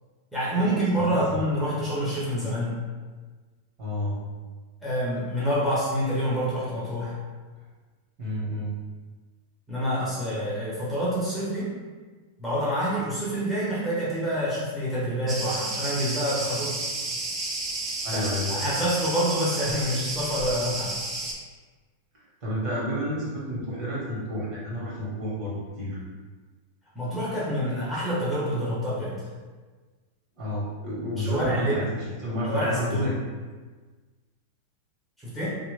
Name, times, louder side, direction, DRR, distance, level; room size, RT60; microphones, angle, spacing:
voice 1, 0.3-2.8 4.8-7.1 9.7-11.7 12.4-16.8 18.1-18.2 18.6-20.9 26.9-29.2 31.2-31.8 32.5-33.1 35.2-35.6, equal, 5° left, -9 dB, 1.0 m, -27 dB
voice 2, 3.8-4.1 8.2-8.7 18.0-18.6 22.4-26.0 30.4-31.9 32.2-33.1, equal, 40° right, -7 dB, 1.4 m, -30 dB
Cricket, 15.3-21.3, right 2 dB, 25° right, 0.5 m, -31 dB
2.8 x 2.5 x 3.3 m, 1.4 s
supercardioid pair, 140°, 0 cm